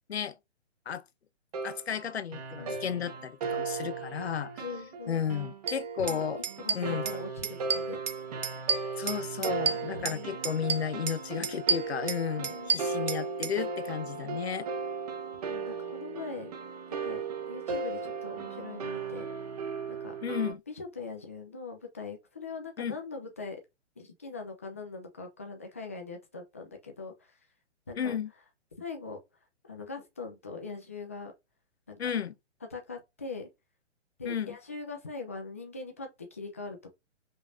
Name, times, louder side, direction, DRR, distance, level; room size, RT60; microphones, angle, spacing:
sound 1, 1.5-20.5, right 5 dB, 35° right, 0.7 m, -36 dB
voice 1, 1.6-4.6 5.1-6.4 6.7-7.0 9.0-14.7 20.2-20.6 22.8-23.0 28.0-28.3 32.0-32.3 34.3-34.6, left 8 dB, 60° left, 0.7 m, -33 dB
voice 2, 2.6-3.1 4.6-5.2 6.0-6.2 6.6-8.0 9.9-10.4 12.4-13.1 15.4-16.5 17.0-17.2 17.5-19.3 19.9-20.1 20.7-23.6 24.0-27.3 27.9-28.2 28.8-29.2 29.6-31.3 31.9-32.0 32.7-33.5 34.2-36.9, left 4 dB, 15° left, 0.4 m, -41 dB
sound 2, 5.7-5.8 6.1-6.2 6.4-7.2 7.4-8.2 8.4-10.2 10.4-11.2 11.4-13.5, right 5 dB, 80° right, 0.6 m, -30 dB
5.2 x 2.9 x 2.5 m
figure-of-eight pair, 125°, 36 cm